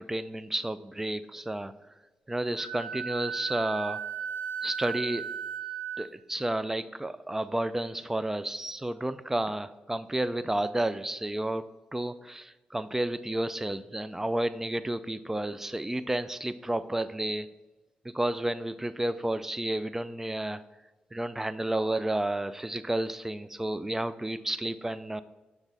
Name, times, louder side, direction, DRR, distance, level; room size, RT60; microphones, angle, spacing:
voice 1, 0.0-1.7 2.3-4.0 4.6-5.2 6.0-11.6 11.9-12.5 12.7-17.5 18.1-20.6 21.1-25.2, right 1 dB, 10° right, 13 dB, 0.3 m, -31 dB
Wind instrument woodwind instrument, 2.6-6.1, right 7 dB, 35° right, 1.3 m, -35 dB
6.0 x 3.6 x 5.4 m, 1.2 s
cardioid pair, 80°, 3 cm